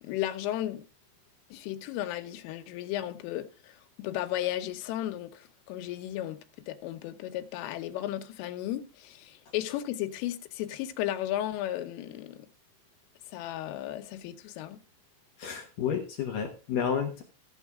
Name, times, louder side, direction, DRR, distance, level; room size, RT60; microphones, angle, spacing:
voice 1, 0.0-0.9 1.5-6.4 6.7-12.5 13.3-14.8, left 13 dB, 90° left, 3.5 m, -34 dB
voice 2, 15.4-17.2, left 7 dB, 70° left, 2.1 m, -31 dB
15.0 x 7.4 x 3.6 m
omnidirectional pair, 5.6 m